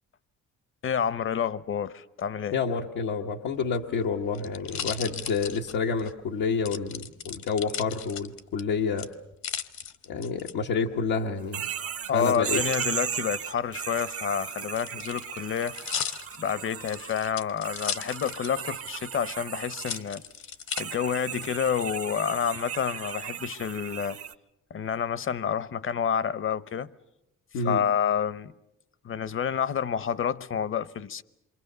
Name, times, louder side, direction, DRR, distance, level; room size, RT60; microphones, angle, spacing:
voice 1, 0.8-2.6 12.1-15.7 16.4-20.2 20.8-24.2 24.7-26.9 27.6-28.5 29.0-31.2, left 8 dB, 45° left, 0.9 m, -29 dB
voice 2, 2.5-9.1 10.1-11.7 12.1-12.6 27.5-27.8, left 5 dB, 90° left, 1.3 m, -29 dB
sound 1, 3.6-6.1 6.7-8.6 9.0-10.5 12.3-12.9 13.8-18.7 19.0-19.1 19.7-20.8 21.5-22.0, left 8 dB, 65° left, 1.3 m, -36 dB
sound 2, 11.5-17.3 17.6-20.0 20.7-24.3, right 8 dB, 50° right, 0.9 m, -36 dB
27.5 x 24.0 x 6.7 m
cardioid pair, 90°, 30 cm